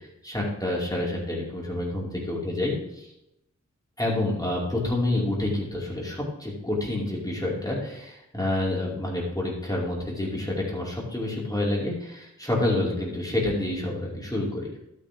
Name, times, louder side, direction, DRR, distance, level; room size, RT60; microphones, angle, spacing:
voice 1, 0.2-3.1 4.0-14.7, left 1 dB, 10° left, -4 dB, 5.0 m, -28 dB
12.5 x 9.4 x 3.7 m, 0.86 s
cardioid pair, 50°, 31 cm